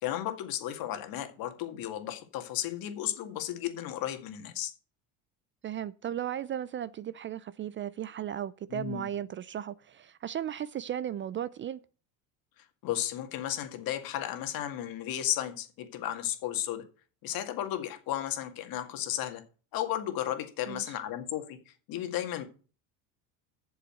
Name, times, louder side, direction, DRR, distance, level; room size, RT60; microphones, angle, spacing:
voice 1, 0.0-4.7 8.7-9.0 12.6-16.8 17.2-19.4 19.7-22.4, left 12 dB, 60° left, 2.0 m, -34 dB
voice 2, 5.6-11.8 20.7-20.8, right 10 dB, 30° right, 0.4 m, -36 dB
7.4 x 7.1 x 7.5 m
supercardioid pair, 95°, 40 cm